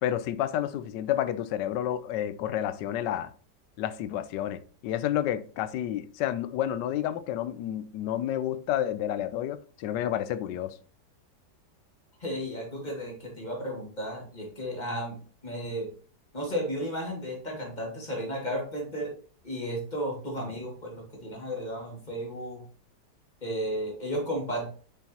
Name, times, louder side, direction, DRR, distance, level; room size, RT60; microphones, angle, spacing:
voice 1, 0.0-3.3 3.8-10.8, left 11 dB, 80° left, 1.2 m, -30 dB
voice 2, 12.2-15.2 15.4-15.9 16.3-19.1 19.4-22.6 23.4-24.7, equal, 25° left, 2.3 m, -33 dB
6.9 x 5.8 x 2.9 m
omnidirectional pair, 1.9 m